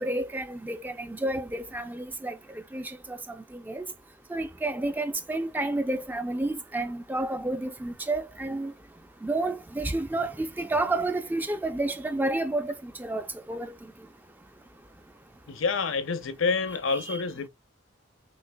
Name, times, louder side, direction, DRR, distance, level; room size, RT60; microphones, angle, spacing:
voice 1, 0.0-2.4 2.7-3.8 4.3-8.7 9.2-13.7 16.9-17.2, right 2 dB, 10° right, 0.3 m, -30 dB
voice 2, 15.5-17.5, left 4 dB, 70° left, 0.6 m, -28 dB
6.4 x 2.8 x 2.2 m
head